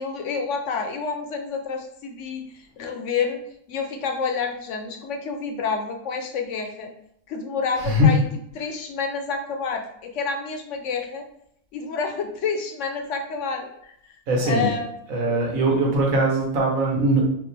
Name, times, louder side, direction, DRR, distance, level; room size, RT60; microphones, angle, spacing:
voice 1, 0.0-3.4 3.7-6.9 7.3-8.2 8.5-11.2 11.7-14.2 14.4-14.9, left 5 dB, 70° left, 4 dB, 0.9 m, -29 dB
voice 2, 7.8-8.2 14.3-14.7 15.1-17.2, equal, 90° right, 0 dB, 1.5 m, -20 dB
5.2 x 2.5 x 3.3 m, 0.72 s
omnidirectional pair, 1.4 m